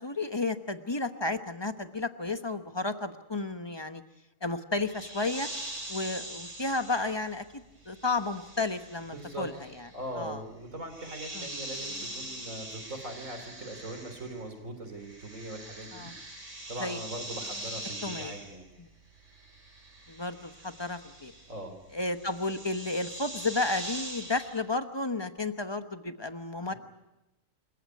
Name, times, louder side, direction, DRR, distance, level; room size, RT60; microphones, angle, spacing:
voice 1, 0.0-4.0 4.4-5.5 5.9-9.5 10.2-10.4 11.3-11.5 15.9-16.1 16.8-17.0 18.0-18.3 18.8-18.9 20.1-21.3 21.9-26.7, left 3 dB, 20° left, 9 dB, 1.1 m, -32 dB
sound 1, 4.9-14.6 14.8-24.6, right 1 dB, 70° right, 5.3 m, -43 dB
voice 2, 9.1-9.5 9.9-16.1 16.7-18.7 21.5-21.8 26.6-26.8, right 1 dB, 85° right, 7 dB, 4.0 m, -41 dB
27.5 x 15.5 x 9.6 m, 0.97 s
omnidirectional pair, 1.3 m